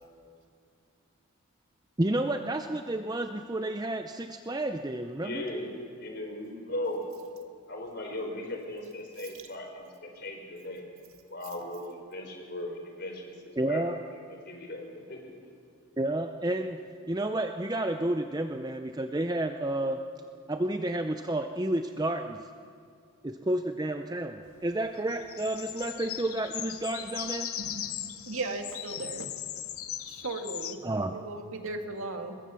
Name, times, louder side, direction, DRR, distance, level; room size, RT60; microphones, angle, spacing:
voice 1, 2.0-5.4 13.6-14.0 16.0-16.8 17.1-20.0 20.5-22.4 23.2-27.5 30.8-31.2, right 1 dB, 20° right, 6 dB, 0.6 m, -30 dB
voice 2, 5.2-5.7 6.0-7.0 7.7-10.9 11.3-14.2 14.5-15.3, left 1 dB, 50° left, 3 dB, 4.2 m, -38 dB
sound 1, 24.5-30.8, left 11 dB, 80° left, 1.1 m, -38 dB
voice 3, 27.6-29.3 30.1-30.8 31.1-32.4, right 2 dB, 75° right, 5 dB, 2.0 m, -37 dB
24.0 x 21.5 x 7.0 m, 2.2 s
head